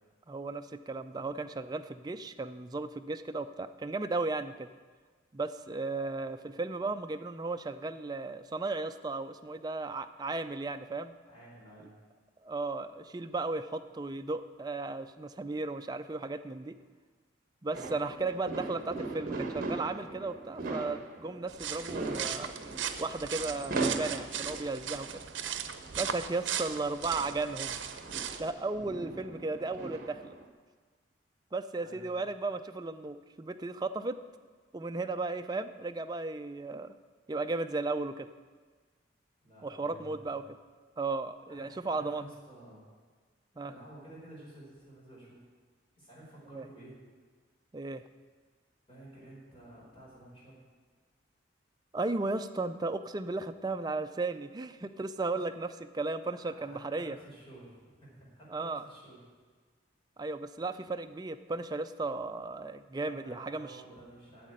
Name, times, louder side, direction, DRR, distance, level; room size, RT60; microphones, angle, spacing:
voice 1, 0.3-4.7 5.3-11.1 12.4-16.8 17.6-22.5 23.0-25.2 26.0-27.8 28.4-30.4 31.5-34.2 34.7-36.9 37.3-38.3 39.6-40.4 41.0-42.3 43.6-43.7 46.5-46.6 47.7-48.0 51.9-57.2 58.5-58.8 60.2-63.7, right 3 dB, 20° right, 8 dB, 0.4 m, -35 dB
voice 2, 11.3-11.9 31.8-32.1 39.4-40.4 41.5-42.9 43.5-45.5 45.9-47.0 48.9-50.6 56.4-59.2 63.0-64.5, right 1 dB, 30° left, -5 dB, 4.6 m, -52 dB
sound 1, 17.7-30.5, right 3 dB, 50° right, 1.3 m, -40 dB
sound 2, 21.5-28.5, right 8 dB, 75° right, 0.7 m, -38 dB
9.3 x 7.4 x 8.8 m, 1.5 s
head